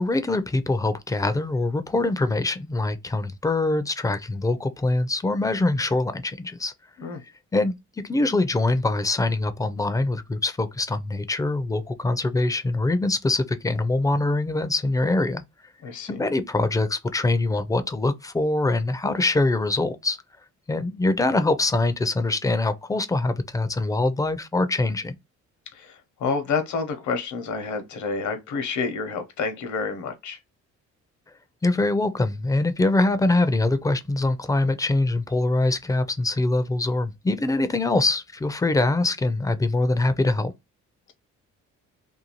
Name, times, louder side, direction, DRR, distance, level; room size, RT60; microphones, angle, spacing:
voice 1, 0.0-6.7 7.5-7.7 8.0-15.4 16.1-20.2 20.7-25.1 31.6-40.5, left 2 dB, 10° left, 0.3 m, -23 dB
voice 2, 15.8-16.2 25.7-25.9 26.2-30.4, left 5 dB, 70° left, 0.9 m, -29 dB
2.6 x 2.3 x 2.8 m
cardioid pair, 90°, 30 cm